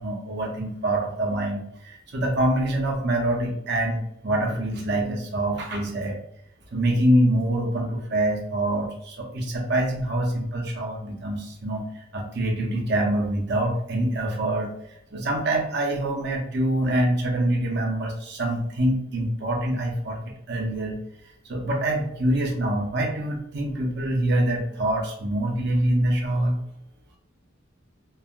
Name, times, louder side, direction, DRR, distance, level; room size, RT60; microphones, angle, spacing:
voice 1, 0.0-6.2 6.7-14.7 15.1-20.2 20.5-21.0 21.4-26.6, right 1 dB, 55° right, 0 dB, 0.7 m, -25 dB
3.1 x 2.5 x 2.3 m, 0.75 s
head